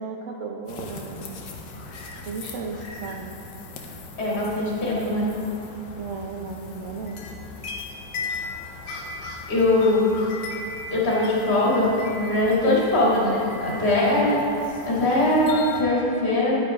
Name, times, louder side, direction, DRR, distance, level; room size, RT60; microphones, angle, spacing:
voice 1, 0.0-1.4 2.3-3.3 5.9-7.2, right 4 dB, 65° right, 1 dB, 0.7 m, -34 dB
sound 1, 0.7-15.8, left 3 dB, 90° left, 1.5 m, -38 dB
voice 2, 4.2-5.3 9.5-10.1 10.9-14.4 14.8-16.6, left 1 dB, 35° left, -6 dB, 1.9 m, -21 dB
10.5 x 5.4 x 4.9 m, 2.8 s
omnidirectional pair, 1.9 m